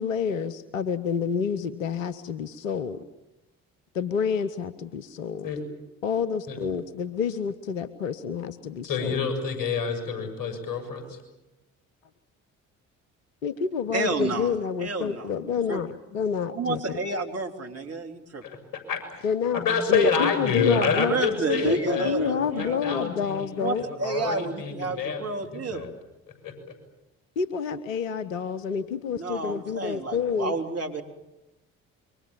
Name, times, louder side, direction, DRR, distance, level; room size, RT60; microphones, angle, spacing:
voice 1, 0.0-3.0 3.9-5.5 6.0-9.2 13.4-17.0 19.2-21.2 21.6-23.8 27.4-30.5, left 6 dB, 85° left, 13 dB, 0.9 m, -28 dB
voice 2, 8.8-11.2 18.4-18.6 18.9-19.3 19.5-22.1 22.6-25.2 25.5-25.9 26.4-26.5, left 5 dB, 60° left, 8 dB, 7.0 m, -27 dB
voice 3, 13.9-14.5 14.8-15.8 16.5-18.4 21.0-22.9 23.6-25.9 29.1-31.0, right 3 dB, 40° right, 4 dB, 3.5 m, -31 dB
27.5 x 24.0 x 7.4 m, 0.96 s
hypercardioid pair, 50°, 39 cm